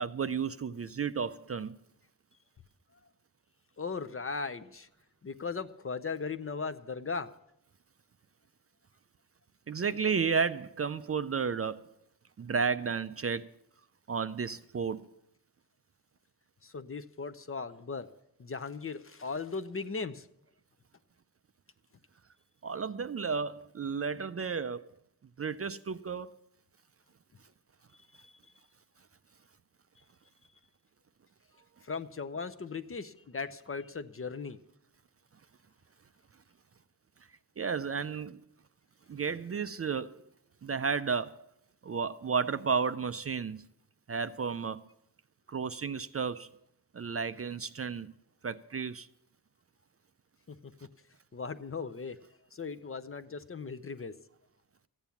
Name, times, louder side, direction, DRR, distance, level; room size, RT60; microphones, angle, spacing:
voice 1, 0.0-1.7 9.7-11.9 12.4-13.5 14.1-15.1 22.6-24.9 25.4-26.3 37.6-38.4 39.1-40.2 40.6-41.4 41.8-43.6 44.1-44.8 45.5-46.5 46.9-48.1 48.4-49.1, right 5 dB, 40° right, 0.4 m, -32 dB
voice 2, 3.8-4.9 5.2-7.3 16.6-18.1 18.4-20.3 28.2-28.3 31.8-34.6 50.6-50.7 51.3-52.2 52.5-54.1, left 4 dB, 35° left, 0.6 m, -38 dB
14.5 x 8.9 x 7.0 m
wide cardioid pair, 110°, 38 cm